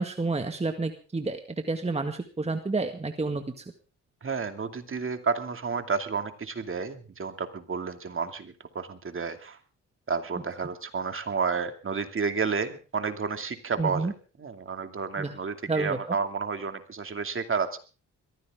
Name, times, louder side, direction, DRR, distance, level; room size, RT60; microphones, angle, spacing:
voice 1, 0.0-1.4 1.7-3.4 13.8-14.1 15.2-15.3 15.7-16.0, right 3 dB, 20° right, 6 dB, 1.8 m, -29 dB
voice 2, 4.2-9.6 10.1-14.1 14.4-17.8, right 5 dB, 40° right, 7 dB, 2.5 m, -31 dB
22.0 x 15.0 x 3.7 m, 0.35 s
cardioid pair, 75°, 32 cm